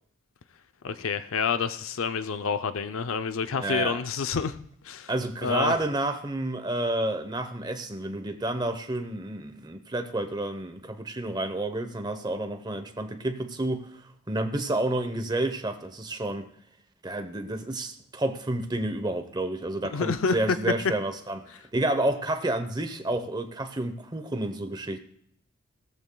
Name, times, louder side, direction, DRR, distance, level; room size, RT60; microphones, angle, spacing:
voice 1, 0.8-5.1 5.4-5.7 19.9-20.6 21.5-21.6, left 5 dB, 70° left, 10 dB, 0.5 m, -28 dB
voice 2, 3.6-4.0 5.1-14.0 14.3-16.5 17.0-25.0, right 1 dB, 20° right, 8 dB, 0.8 m, -30 dB
17.5 x 13.5 x 2.3 m, 0.68 s
head